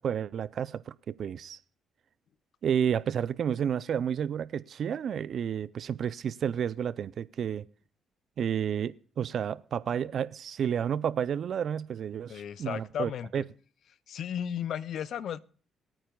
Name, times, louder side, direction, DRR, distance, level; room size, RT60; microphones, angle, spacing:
voice 1, 0.0-1.6 2.6-7.7 8.4-13.4, right 8 dB, 60° right, 0.4 m, -31 dB
voice 2, 12.3-13.5 14.1-15.4, left 9 dB, 65° left, 0.5 m, -34 dB
23.5 x 8.9 x 2.3 m
cardioid pair, 90°, 0 cm